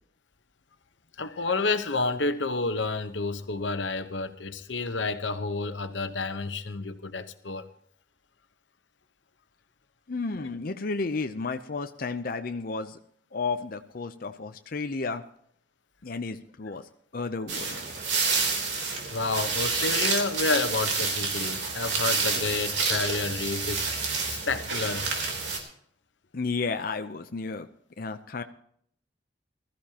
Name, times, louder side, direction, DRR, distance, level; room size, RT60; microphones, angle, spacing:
voice 1, 1.2-7.7 10.4-10.5 19.1-25.1, left 3 dB, 90° left, 1.1 m, -30 dB
voice 2, 10.1-13.0 13.3-15.2 16.0-17.9 26.3-27.7 28.0-28.4, left 4 dB, 50° left, 0.6 m, -32 dB
sound 1, 17.5-25.6, right 4 dB, 70° right, 3.4 m, -28 dB
20.5 x 14.0 x 2.9 m
head